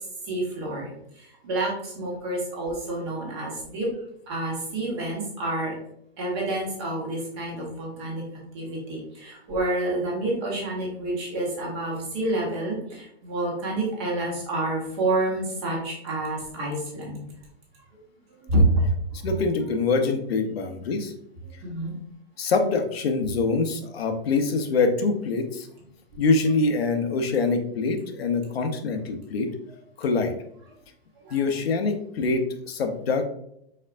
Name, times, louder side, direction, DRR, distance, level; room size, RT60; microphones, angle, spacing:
voice 1, 0.2-3.9 4.3-5.7 6.2-8.2 8.5-17.3 18.3-18.9 21.6-21.9 31.2-31.4, right 2 dB, 25° right, -2 dB, 1.3 m, -28 dB
voice 2, 19.1-21.1 22.4-25.7 26.2-29.5 30.0-30.3 31.3-33.3, left 4 dB, 70° left, 5 dB, 0.9 m, -24 dB
4.7 x 4.3 x 2.5 m, 0.74 s
hypercardioid pair, 175°, 31 cm